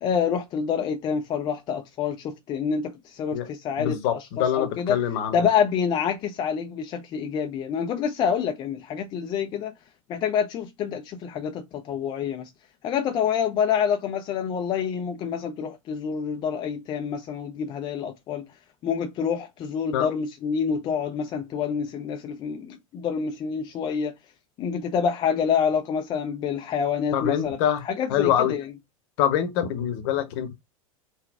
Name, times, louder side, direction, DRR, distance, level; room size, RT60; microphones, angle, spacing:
voice 1, 0.0-5.0 5.3-9.7 10.1-12.5 12.8-18.4 18.8-24.1 24.6-27.6 27.9-28.6, left 7 dB, 25° left, 0.4 m, -27 dB
voice 2, 3.8-5.5 19.9-20.1 27.1-27.8 28.1-28.5 29.2-30.5, left 10 dB, 45° left, 0.9 m, -25 dB
3.8 x 2.2 x 3.4 m
figure-of-eight pair, 85°, 18 cm